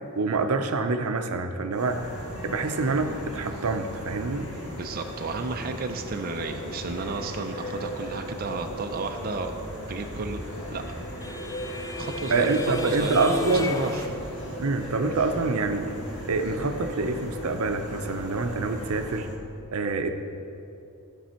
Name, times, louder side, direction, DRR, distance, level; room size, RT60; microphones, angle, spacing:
voice 1, 0.2-4.5 12.3-13.8 14.6-15.9 16.2-19.3 19.7-20.1, right 3 dB, 85° right, 7 dB, 0.7 m, -26 dB
sound 1, 1.7-19.4, equal, 20° right, 1.1 m, -45 dB
sound 2, 1.8-19.2, equal, 60° left, 2.0 m, -38 dB
voice 2, 4.7-9.5 9.9-10.4 10.7-10.8 12.0-12.5 12.8-14.2, right 3 dB, 45° right, 4 dB, 0.5 m, -32 dB
sound 3, 10.2-14.1, left 2 dB, 15° left, 0.5 m, -34 dB
14.0 x 5.5 x 4.4 m, 2.6 s
head